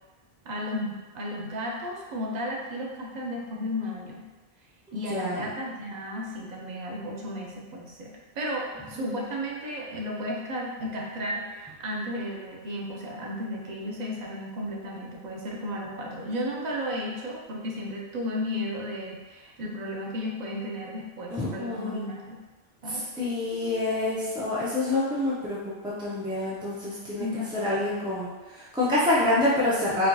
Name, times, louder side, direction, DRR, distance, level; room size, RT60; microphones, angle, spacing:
voice 1, 0.4-4.2 4.9-22.4 22.8-23.0 27.2-27.6, equal, 50° right, -2 dB, 0.6 m, -34 dB
voice 2, 4.9-5.5 9.0-9.2 21.3-22.0 22.9-27.3 27.5-30.1, left 2 dB, 10° right, -9 dB, 0.3 m, -27 dB
4.3 x 2.6 x 2.3 m, 1.2 s
omnidirectional pair, 1.1 m